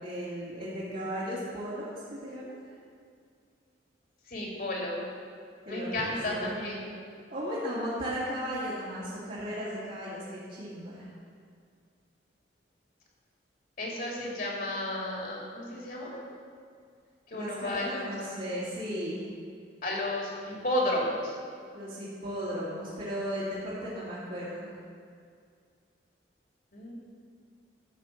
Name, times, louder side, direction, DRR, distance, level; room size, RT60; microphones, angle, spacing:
voice 1, 0.0-2.5 5.7-6.5 7.3-11.1 17.3-19.3 21.7-24.7, equal, 50° right, -11 dB, 2.6 m, -36 dB
voice 2, 4.2-5.0 5.7-6.9 13.8-16.2 17.3-18.1 19.8-21.3 26.7-26.9, left 1 dB, 50° left, -2 dB, 2.7 m, -32 dB
13.5 x 6.0 x 7.3 m, 2.2 s
head